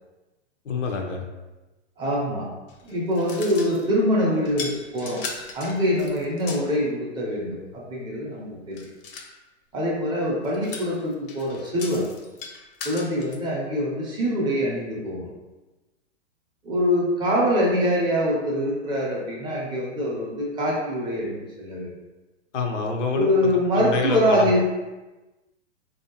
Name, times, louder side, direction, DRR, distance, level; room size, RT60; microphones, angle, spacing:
voice 1, 0.7-1.2 22.5-23.3 23.8-24.6, left 4 dB, 85° left, 2 dB, 0.7 m, -27 dB
voice 2, 2.0-2.5 2.8-8.8 9.7-12.1 12.8-15.3 16.6-21.9 23.1-24.6, equal, 15° right, -4 dB, 0.4 m, -24 dB
sound 1, 2.7-4.0 4.5-6.8 8.7-9.3 10.4-13.4, left 4 dB, 50° left, 0.6 m, -38 dB
3.3 x 2.6 x 2.8 m, 1.1 s
hypercardioid pair, 125°, 36 cm